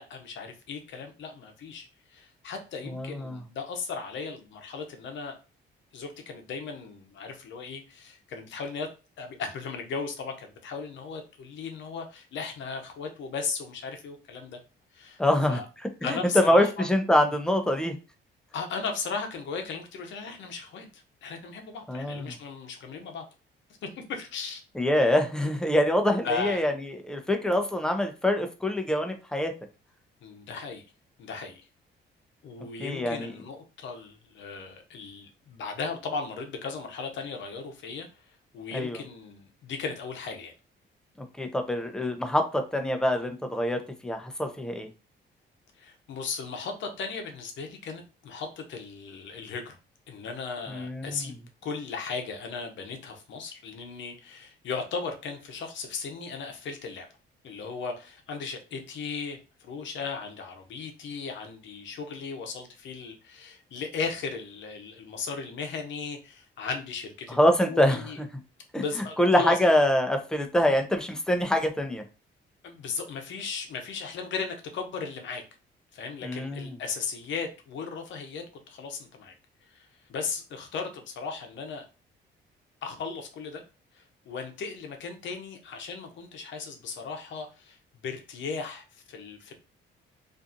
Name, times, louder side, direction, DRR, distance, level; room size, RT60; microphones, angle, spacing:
voice 1, 0.0-5.4 5.9-8.9 9.2-14.6 14.9-15.2 15.5-15.6 16.0-16.8 18.5-23.2 23.8-24.6 26.2-26.6 30.2-30.8 31.2-31.7 32.4-38.2 38.5-40.5 45.8-49.8 50.1-57.1 57.4-68.2 68.7-69.6 72.6-75.4 75.9-79.3 79.7-81.9 82.8-83.6 83.9-87.8 88.0-89.6, left 5 dB, 70° left, 4 dB, 0.7 m, -36 dB
voice 2, 2.9-3.4 15.2-15.6 16.0-18.0 21.9-22.3 24.8-29.5 32.8-33.3 38.7-39.0 41.2-44.9 50.7-51.3 67.4-68.0 68.7-68.8 69.2-72.0 76.2-76.7, left 1 dB, 5° left, 5 dB, 0.5 m, -25 dB
2.6 x 2.3 x 2.5 m, 0.32 s
cardioid pair, 90°, 20 cm